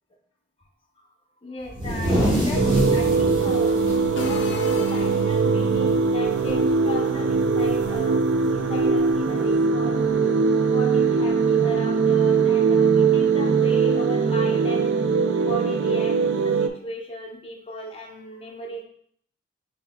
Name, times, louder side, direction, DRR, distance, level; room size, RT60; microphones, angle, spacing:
voice 1, 1.4-3.8 4.1-8.2 8.5-10.4 10.7-15.0 15.4-18.8, equal, 30° left, -1 dB, 0.7 m, -36 dB
sound 1, 1.7-5.4 5.7-5.9 6.2-6.7 7.8-7.9 9.0-9.1, equal, 25° right, 1.0 m, -25 dB
sound 2, 2.5-16.7, right 5 dB, 65° right, 0.4 m, -21 dB
sound 3, 4.2-5.7, left 4 dB, 60° left, 0.5 m, -35 dB
5.9 x 3.6 x 2.2 m, 0.65 s
head